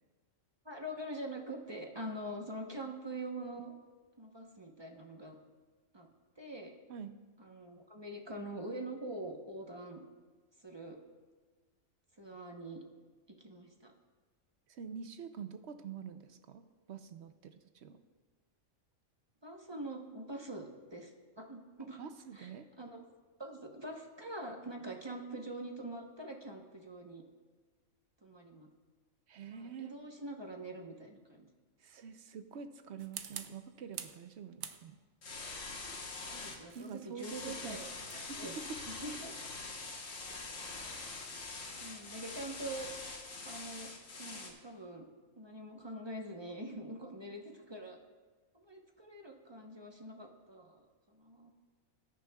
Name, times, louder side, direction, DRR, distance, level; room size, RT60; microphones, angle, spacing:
voice 1, 0.6-3.7 4.2-5.4 5.9-6.1 6.4-6.7 7.4-10.0 10.6-11.0 12.2-12.8 13.4-13.9 19.4-22.0 22.3-23.0 23.4-27.2 28.2-28.7 29.5-31.5 36.3-39.3 41.8-42.9 43.4-43.9 44.2-45.1 45.4-48.0 48.5-51.5, right 1 dB, 25° right, 1 dB, 0.8 m, -44 dB
voice 2, 14.7-18.0 21.8-22.7 29.3-30.0 31.8-35.0 36.7-37.8 38.1-38.8 40.3-40.4, right 6 dB, 65° right, 9 dB, 0.8 m, -46 dB
sound 1, 33.0-34.3 34.6-35.2 36.0-40.7, right 9 dB, 90° right, 1.1 m, -49 dB
sound 2, 35.2-36.6 37.2-44.5, left 3 dB, 75° left, 1.7 m, -44 dB
19.5 x 9.7 x 2.3 m, 1.4 s
omnidirectional pair, 1.4 m